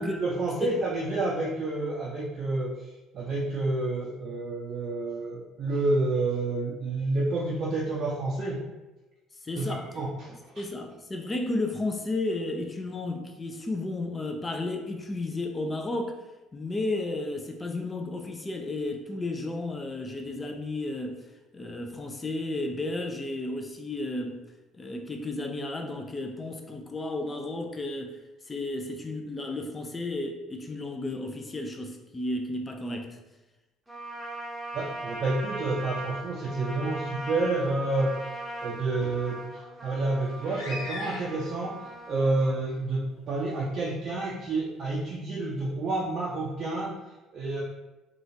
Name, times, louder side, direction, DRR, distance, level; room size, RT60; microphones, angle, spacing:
voice 1, 0.0-2.9 3.1-8.6 9.6-9.7 10.0-10.6 34.7-39.5 39.8-46.9 47.3-47.6, right 2 dB, 45° right, -5 dB, 0.5 m, -29 dB
voice 2, 9.4-9.9 10.3-16.2 16.5-21.3 21.5-24.5 24.7-28.2 28.4-33.2, left 2 dB, 25° left, 4 dB, 0.4 m, -33 dB
Trumpet, 33.9-42.6, right 1 dB, 5° right, 0.8 m, -39 dB
sound 1, 40.3-41.7 42.6-42.8 43.5-43.6, left 1 dB, 70° left, 1.1 m, -39 dB
3.0 x 2.3 x 2.6 m, 1.1 s
figure-of-eight pair, 55°, 0 cm